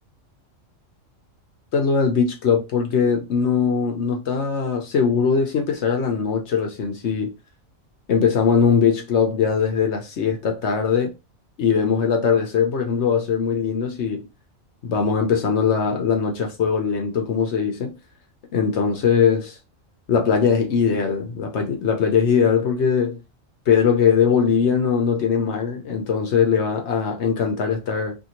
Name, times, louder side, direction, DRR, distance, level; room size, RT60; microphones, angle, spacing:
voice 1, 1.7-7.3 8.1-11.1 11.6-14.3 14.8-18.0 18.5-19.6 20.1-23.2 23.7-28.1, left 6 dB, 65° left, 0.9 m, -21 dB
2.7 x 2.6 x 2.8 m
omnidirectional pair, 1.4 m